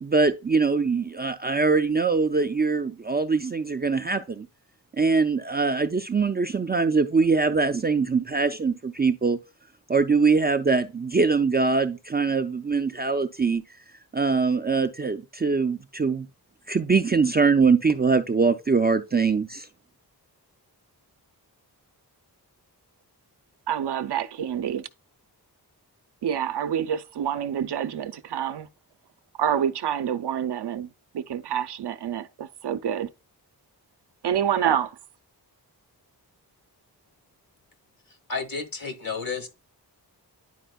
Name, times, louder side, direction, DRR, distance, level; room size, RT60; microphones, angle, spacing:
voice 1, 0.0-4.5 4.9-9.4 9.9-13.6 14.1-16.3 16.7-19.7, right 4 dB, 25° right, 0.3 m, -23 dB
voice 2, 23.7-24.9 26.2-28.7 29.4-30.9 31.1-33.1 34.2-35.0, right 9 dB, 85° right, 0.6 m, -27 dB
voice 3, 38.3-39.5, left 4 dB, 55° left, 1.4 m, -31 dB
10.0 x 4.3 x 2.2 m
wide cardioid pair, 155°, 40 cm